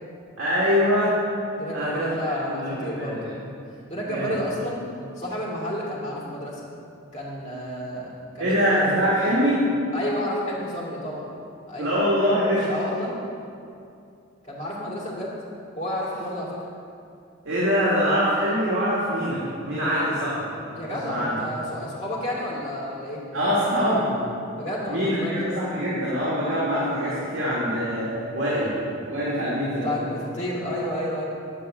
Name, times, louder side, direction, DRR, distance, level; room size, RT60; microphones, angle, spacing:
voice 1, 0.4-1.1 1.7-3.3 4.1-4.4 8.4-9.6 11.8-12.7 17.4-21.4 23.3-24.1 24.9-29.9, equal, 70° right, -9 dB, 2.2 m, -24 dB
voice 2, 1.6-3.2 3.9-4.8 5.2-6.6 7.1-8.1 8.3-8.6 9.9-11.3 11.7-11.9 12.7-13.2 14.4-15.3 15.7-16.6 20.7-23.2 24.5-25.4 29.8-31.2, equal, 35° left, -6 dB, 2.4 m, -30 dB
9.4 x 4.6 x 7.5 m, 2.5 s
head